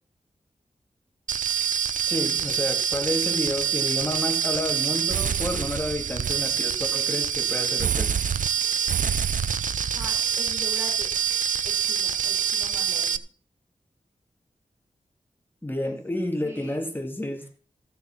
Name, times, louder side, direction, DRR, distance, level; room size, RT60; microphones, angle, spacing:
sound 1, 1.3-13.2, right 8 dB, 80° right, 0.6 m, -26 dB
voice 1, 2.1-8.1 15.6-17.5, left 1 dB, 15° left, 3 dB, 2.7 m, -30 dB
voice 2, 9.9-11.1 11.6-13.2 15.8-16.0 16.4-16.8, right 1 dB, 20° right, 1 dB, 5.3 m, -41 dB
15.0 x 7.0 x 5.9 m, 0.42 s
wide cardioid pair, 95°, 13 cm